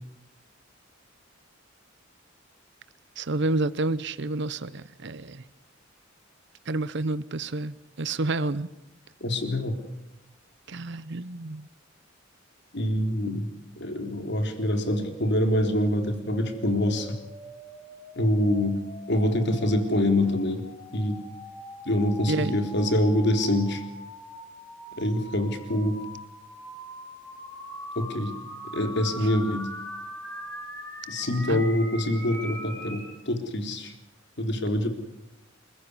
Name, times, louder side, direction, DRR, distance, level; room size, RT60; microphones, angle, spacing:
voice 1, 3.2-5.4 6.7-8.7 10.7-11.7 22.3-22.6 31.5-31.6, right 2 dB, 60° right, 16 dB, 0.8 m, -29 dB
voice 2, 9.2-9.7 12.7-13.5 13.8-17.1 18.2-18.8 19.1-20.6 20.9-21.2 21.9-23.8 25.0-26.0 28.0-28.3 28.7-29.7 31.1-33.9 34.4-34.9, left 1 dB, 60° left, 6 dB, 3.8 m, -25 dB
sound 1, 14.2-33.1, equal, 10° left, 5.3 m, -42 dB
27.5 x 15.0 x 9.8 m, 0.91 s
head